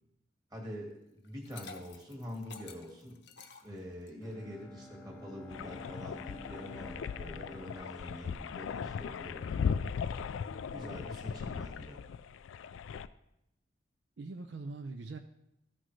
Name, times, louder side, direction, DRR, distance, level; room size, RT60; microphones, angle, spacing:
voice 1, 0.5-3.2 3.6-9.8 10.7-12.0, equal, 20° right, -1 dB, 1.7 m, -45 dB
Liquid, 1.2-4.3, left 5 dB, 65° left, 0.8 m, -51 dB
Bowed string instrument, 4.2-9.2, left 1 dB, 10° left, 0.6 m, -51 dB
sound 1, 5.5-13.1, left 6 dB, 85° left, 0.3 m, -38 dB
voice 2, 14.2-15.2, right 3 dB, 65° right, 6 dB, 0.5 m, -43 dB
13.5 x 6.0 x 3.2 m, 0.84 s
head